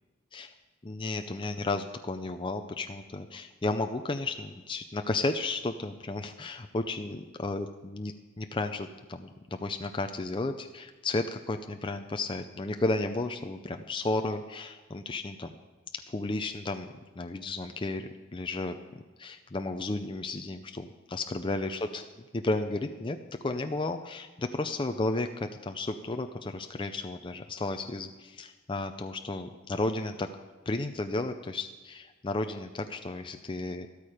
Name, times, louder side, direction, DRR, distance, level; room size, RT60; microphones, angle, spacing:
voice 1, 0.8-15.5 16.1-22.0 22.3-23.2 23.4-30.3 30.7-34.0, left 2 dB, 25° left, 7 dB, 0.5 m, -33 dB
13.0 x 12.5 x 4.9 m, 1.2 s
head